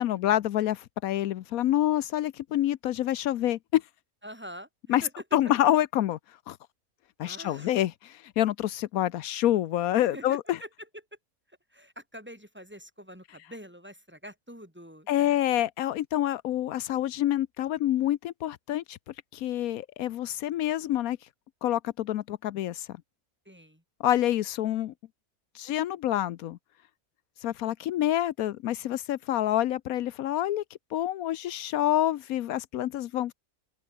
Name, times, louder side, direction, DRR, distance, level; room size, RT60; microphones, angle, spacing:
voice 1, 0.0-3.8 4.9-5.1 5.3-6.2 6.5-6.6 7.2-10.6 15.1-19.0 19.3-21.2 21.6-22.9 24.0-24.9 25.5-26.6 27.4-30.6 30.9-33.3, left 13 dB, 80° left, 1.1 m, -27 dB
voice 2, 4.2-5.1 7.2-7.7 10.0-10.7 11.7-15.4 23.5-23.8, equal, 5° right, 4.5 m, -45 dB
open air
omnidirectional pair, 1.5 m